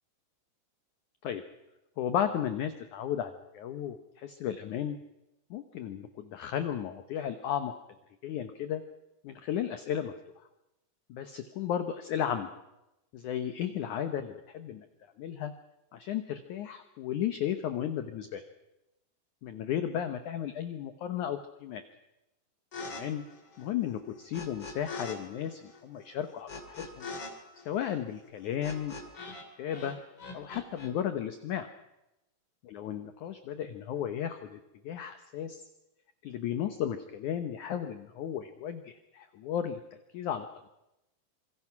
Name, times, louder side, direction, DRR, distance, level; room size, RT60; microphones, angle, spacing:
voice 1, 2.0-5.0 5.5-7.7 8.2-8.8 9.2-10.1 11.1-12.5 13.1-14.9 15.2-15.5 15.9-18.4 19.4-21.8 22.9-23.2 23.6-27.1 27.6-28.9 29.6-30.0 30.3-31.7 32.6-34.6 34.8-35.6 36.2-39.8 40.1-40.7, left 9 dB, 75° left, 9 dB, 1.8 m, -34 dB
sound 1, 22.7-23.0 23.3-25.2 25.4-29.4 29.7-30.9, left 3 dB, 30° left, 2.9 m, -42 dB
26.5 x 23.5 x 6.0 m, 0.94 s
omnidirectional pair, 4.8 m